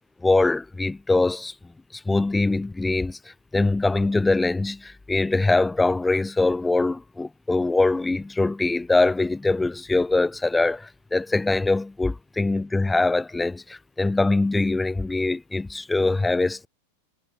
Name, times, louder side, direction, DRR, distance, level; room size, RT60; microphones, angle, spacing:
voice 1, 0.2-1.5 1.9-16.7, left 2 dB, 10° left, 0.6 m, -23 dB
figure-of-eight pair, 90°, 0 cm